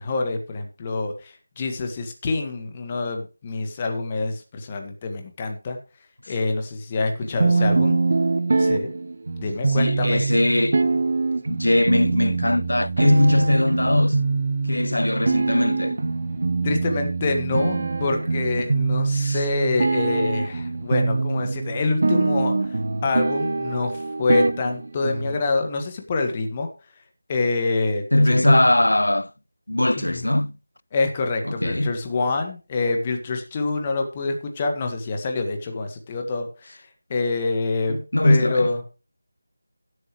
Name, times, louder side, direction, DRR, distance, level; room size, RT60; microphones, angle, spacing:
voice 1, 0.0-5.8 6.3-8.0 8.6-8.9 9.4-10.2 16.6-26.7 27.3-28.5 30.0-30.3 30.9-36.7 37.1-38.8, left 3 dB, 20° left, 1.7 m, -26 dB
voice 2, 7.3-7.8 9.7-11.0 11.5-14.2 14.7-16.0 19.1-19.4 28.1-29.3 29.7-30.5 31.4-31.9 37.9-38.7, left 1 dB, 70° left, 0.5 m, -20 dB
sound 1, 7.4-25.4, right 3 dB, 45° right, 1.0 m, -24 dB
17.0 x 8.0 x 3.2 m
figure-of-eight pair, 165°, 0 cm